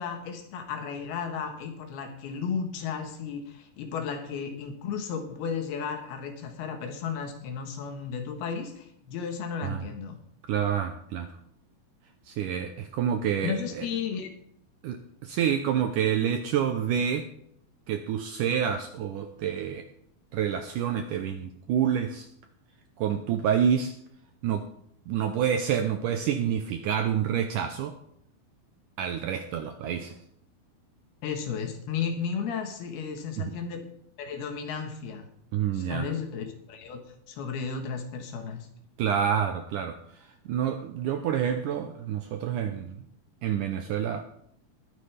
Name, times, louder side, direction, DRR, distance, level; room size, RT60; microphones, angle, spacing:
voice 1, 0.0-10.2 13.4-14.3 31.2-33.8 34.2-35.3 35.7-38.7, left 6 dB, 80° left, 5 dB, 3.4 m, -34 dB
voice 2, 10.5-11.3 12.3-13.9 14.8-17.3 17.9-19.9 20.3-22.3 23.0-23.9 24.4-24.6 25.1-27.9 29.0-30.1 33.4-33.5 35.5-36.1 39.0-43.0 43.4-44.2, right 8 dB, 80° right, 6 dB, 1.9 m, -28 dB
20.0 x 9.5 x 3.4 m, 0.71 s
omnidirectional pair, 4.5 m